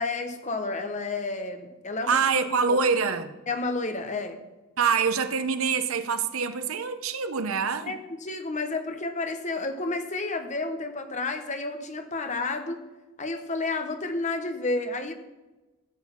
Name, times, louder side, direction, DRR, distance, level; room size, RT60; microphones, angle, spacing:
voice 1, 0.0-2.2 2.7-2.8 3.5-4.4 7.8-12.8 13.2-15.1, left 3 dB, 35° left, 1.1 m, -31 dB
voice 2, 2.1-3.3 4.8-7.9, right 5 dB, 75° right, 0.8 m, -25 dB
15.5 x 6.5 x 5.8 m
head